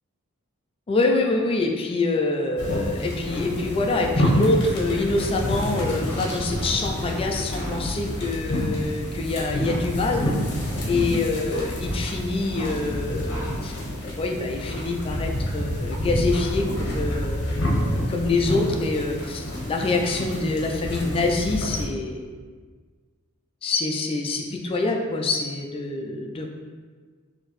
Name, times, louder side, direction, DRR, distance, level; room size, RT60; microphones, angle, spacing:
voice 1, 0.9-10.3 10.9-13.7 14.0-22.3 23.6-26.5, left 3 dB, 25° left, 2 dB, 0.3 m, -26 dB
sound 1, 2.6-21.9, equal, 50° left, 0.8 m, -28 dB
4.5 x 2.8 x 3.1 m, 1.5 s
head